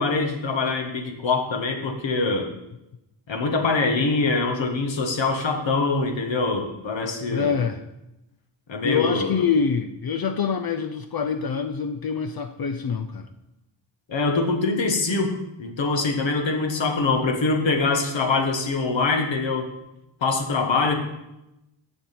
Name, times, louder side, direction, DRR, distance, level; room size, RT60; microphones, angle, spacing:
voice 1, 0.0-2.5 3.3-7.5 8.7-9.5 14.1-19.7 20.2-20.9, left 3 dB, 75° left, 4 dB, 1.6 m, -24 dB
voice 2, 7.2-7.8 8.8-13.3, left 6 dB, 50° left, 6 dB, 0.6 m, -25 dB
7.4 x 7.0 x 6.0 m, 0.90 s
cardioid pair, 75°, 46 cm